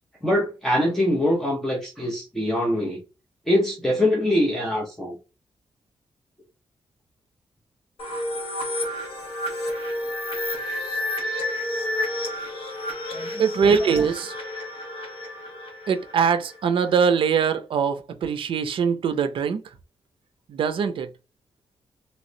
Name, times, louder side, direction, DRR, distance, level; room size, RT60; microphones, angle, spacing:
voice 1, 0.2-3.0 3.5-5.2 13.1-14.0, left 1 dB, 5° left, 0.6 m, -24 dB
sound 1, 8.0-16.6, left 1 dB, 75° left, 1.4 m, -30 dB
voice 2, 13.4-14.3 15.9-19.6 20.5-21.1, right 6 dB, 65° right, 0.4 m, -22 dB
3.1 x 3.0 x 2.6 m
wide cardioid pair, 170°, 10 cm